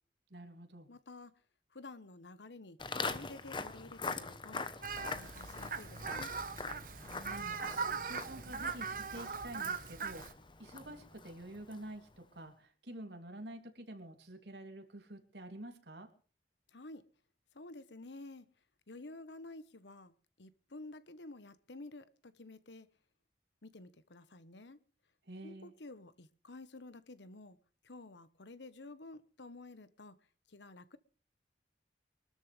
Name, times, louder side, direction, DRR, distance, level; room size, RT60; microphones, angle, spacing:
voice 1, 0.3-0.9 7.0-7.6 8.0-10.2 10.6-16.1 25.3-25.7, right 1 dB, 75° right, 3.0 m, -48 dB
voice 2, 0.9-1.3 1.7-4.6 4.9-6.3 16.7-17.0 17.5-18.5 18.9-22.9 23.6-24.8 25.4-27.6 27.8-30.1 30.5-31.0, left 2 dB, 85° left, 1.2 m, -51 dB
Walk footsteps, 2.8-12.0, left 4 dB, 25° left, 1.0 m, -44 dB
Fowl, 4.8-10.3, right 5 dB, 50° right, 1.2 m, -40 dB
24.0 x 13.0 x 3.4 m
head